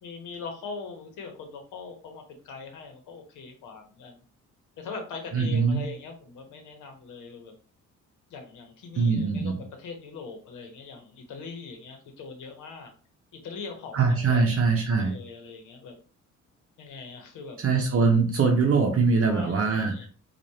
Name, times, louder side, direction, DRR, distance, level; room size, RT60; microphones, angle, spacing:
voice 1, 0.0-4.2 4.8-7.5 8.3-12.9 13.4-14.6 15.0-15.9 16.8-17.6 19.3-20.1, left 4 dB, 85° left, 4 dB, 1.0 m, -41 dB
voice 2, 5.3-5.8 9.0-9.5 13.9-15.1 17.6-20.1, right 4 dB, 50° right, 2 dB, 0.8 m, -22 dB
4.6 x 2.5 x 2.8 m, 0.39 s
cardioid pair, 90°, 30 cm